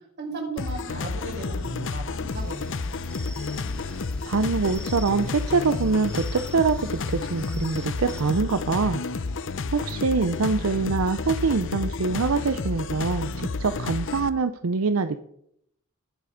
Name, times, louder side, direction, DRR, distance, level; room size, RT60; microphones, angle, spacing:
voice 1, 0.2-2.8, right 3 dB, 55° right, 1 dB, 4.9 m, -36 dB
sound 1, 0.6-14.3, left 3 dB, 65° left, 0.7 m, -31 dB
sound 2, 2.3-8.4, left 1 dB, 5° left, 0.8 m, -44 dB
voice 2, 4.2-9.0 9.7-15.2, right 4 dB, 80° right, 10 dB, 0.6 m, -24 dB
20.5 x 7.8 x 5.1 m, 0.75 s
head